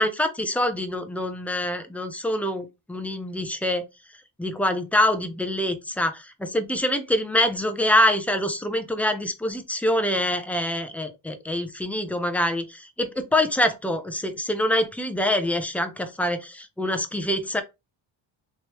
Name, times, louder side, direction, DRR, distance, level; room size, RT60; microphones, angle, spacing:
voice 1, 0.0-3.9 4.4-6.1 6.4-17.6, left 1 dB, 5° left, 0.5 m, -25 dB
3.2 x 3.0 x 2.9 m
cardioid pair, 105°, 49 cm